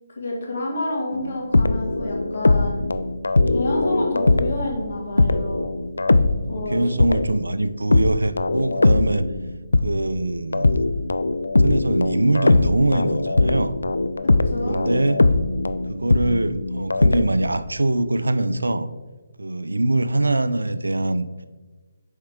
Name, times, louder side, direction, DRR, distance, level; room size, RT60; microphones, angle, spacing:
voice 1, 0.1-2.8 3.5-5.6 6.5-6.8 14.2-14.8, left 2 dB, 60° left, -1 dB, 1.9 m, -29 dB
sound 1, 1.1-4.7 5.2-10.1 10.5-17.2, left 2 dB, 85° left, 0.3 m, -20 dB
voice 2, 6.5-9.3 9.8-10.7 11.6-13.8 14.6-15.3 15.9-18.9 19.4-21.5, right 2 dB, 90° right, 13 dB, 0.4 m, -23 dB
6.4 x 4.4 x 3.5 m, 1.3 s
figure-of-eight pair, 150°, 0 cm